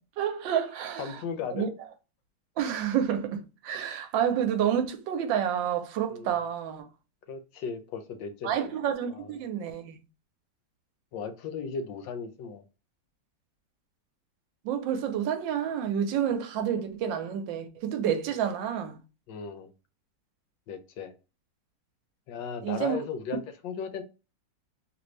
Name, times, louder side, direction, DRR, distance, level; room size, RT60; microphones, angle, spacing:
voice 1, 0.2-1.1 1.5-1.7 2.6-6.9 8.4-10.0 14.6-19.0 22.6-23.0, right 9 dB, 85° right, 1.3 m, -29 dB
voice 2, 1.0-1.7 6.1-6.4 7.3-8.8 9.1-9.4 11.1-12.6 19.3-19.7 20.7-21.1 22.3-24.0, left 6 dB, 80° left, 1.3 m, -36 dB
3.2 x 2.6 x 3.1 m
omnidirectional pair, 2.0 m